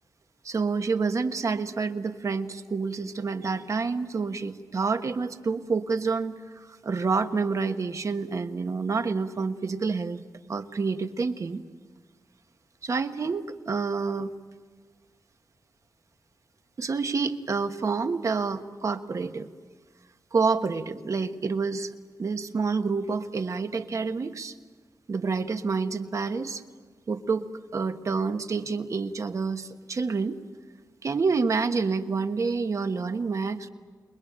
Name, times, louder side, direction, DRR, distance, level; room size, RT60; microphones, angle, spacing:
voice 1, 0.4-10.2 10.5-11.6 12.8-14.3 16.8-19.5 20.3-21.9 22.2-24.5 25.1-26.6 27.1-30.4 31.0-33.7, right 4 dB, 50° right, 8 dB, 1.3 m, -28 dB
28.5 x 21.5 x 8.8 m, 1.4 s
wide cardioid pair, 105°, 7 cm